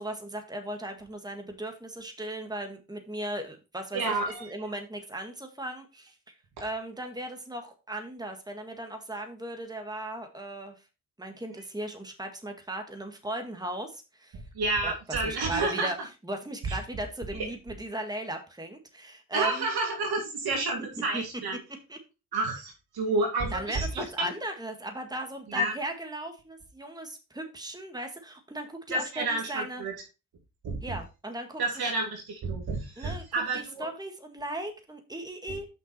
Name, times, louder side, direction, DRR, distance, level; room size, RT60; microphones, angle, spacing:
voice 1, 0.0-6.3 6.6-10.8 11.2-14.4 14.8-16.0 16.2-19.7 21.1-21.2 21.9-22.0 23.5-29.8 30.8-31.9 33.0-33.2 33.5-35.7, right 1 dB, 10° right, 5 dB, 1.8 m, -37 dB
voice 2, 3.9-4.5 14.5-15.9 16.6-16.8 19.3-21.6 22.3-24.3 25.5-25.7 28.9-29.9 30.6-31.0 31.6-33.9, right 2 dB, 75° right, 1 dB, 2.6 m, -30 dB
6.0 x 5.4 x 4.3 m, 0.29 s
supercardioid pair, 45°, 38 cm